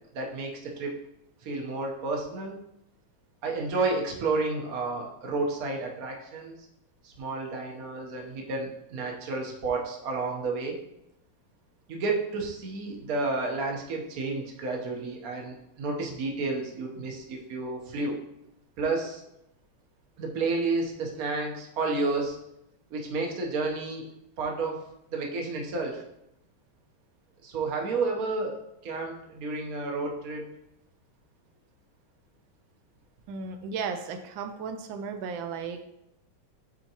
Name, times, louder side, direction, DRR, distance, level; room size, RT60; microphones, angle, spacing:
voice 1, 0.1-0.9 1.4-2.6 3.4-6.7 7.0-10.8 11.9-18.2 18.8-19.2 20.2-22.4 22.9-24.0 24.4-24.8 25.1-26.0 27.4-30.5, right 3 dB, 55° right, 0 dB, 1.4 m, -31 dB
voice 2, 33.3-35.8, right 5 dB, 85° right, 6 dB, 1.3 m, -35 dB
9.1 x 4.4 x 2.9 m, 0.84 s
omnidirectional pair, 2.1 m